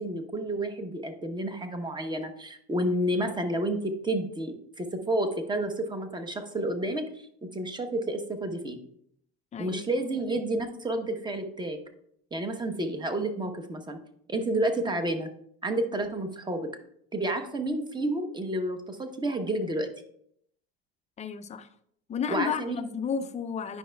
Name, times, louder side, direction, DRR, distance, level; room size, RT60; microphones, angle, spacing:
voice 1, 0.0-7.0 7.5-8.8 9.6-11.8 12.3-14.0 14.3-15.3 15.6-16.7 17.1-19.9 22.3-22.8, right 1 dB, 15° right, 7 dB, 0.8 m, -30 dB
voice 2, 9.5-9.8 21.2-21.7 22.1-23.8, left 7 dB, 20° left, 10 dB, 0.4 m, -32 dB
9.9 x 5.5 x 2.2 m, 0.70 s
supercardioid pair, 110°, 31 cm